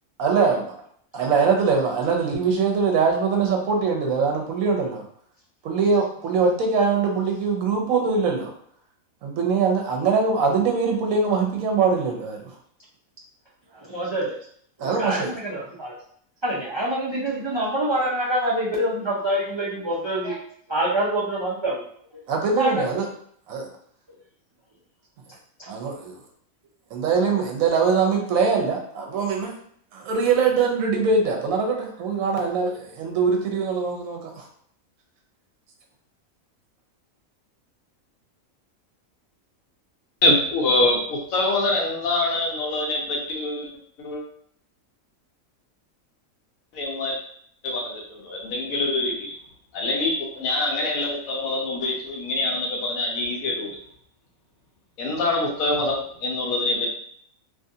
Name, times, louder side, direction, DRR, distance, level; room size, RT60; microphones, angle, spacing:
voice 1, 0.2-0.6 1.1-5.0 5.6-8.5 9.2-12.4 14.8-15.3 22.3-23.1 23.5-23.7 25.7-26.2 26.9-29.5 29.9-34.4, right 5 dB, 80° right, 1 dB, 1.1 m, -22 dB
voice 2, 13.8-14.3 14.8-15.9 16.4-20.4 20.7-21.8 22.1-22.2 22.6-22.7, right 1 dB, 40° right, -6 dB, 0.4 m, -25 dB
voice 3, 40.2-43.7 44.0-44.2 46.7-47.1 47.6-49.3 49.7-53.7 55.0-56.9, left 2 dB, 80° left, 0 dB, 1.2 m, -24 dB
3.0 x 2.4 x 2.6 m, 0.62 s
omnidirectional pair, 1.4 m